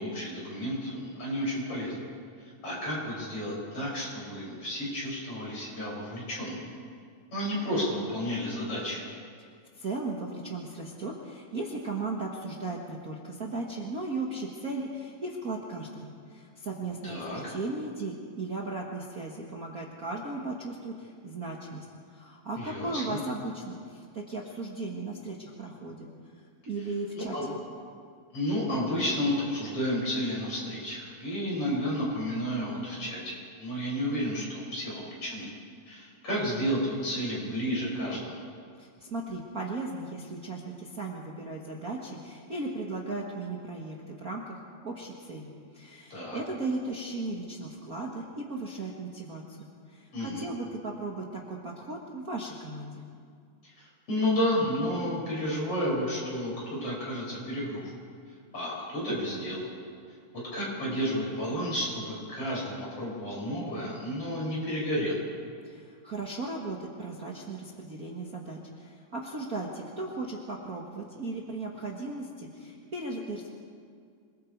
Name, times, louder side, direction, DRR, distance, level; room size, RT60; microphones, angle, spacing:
voice 1, 0.0-2.0 2.6-6.7 7.3-9.0 17.0-17.4 22.6-23.2 27.2-27.5 28.3-35.5 35.9-38.4 46.1-46.4 50.1-50.5 53.6-57.8 58.5-59.7 60.5-65.2, equal, 50° left, -5 dB, 7.4 m, -31 dB
voice 2, 9.7-21.8 22.1-26.1 26.6-27.6 38.8-53.0 65.6-73.5, right 2 dB, 35° right, -2 dB, 1.7 m, -36 dB
27.0 x 20.5 x 4.7 m, 2.2 s
omnidirectional pair, 3.4 m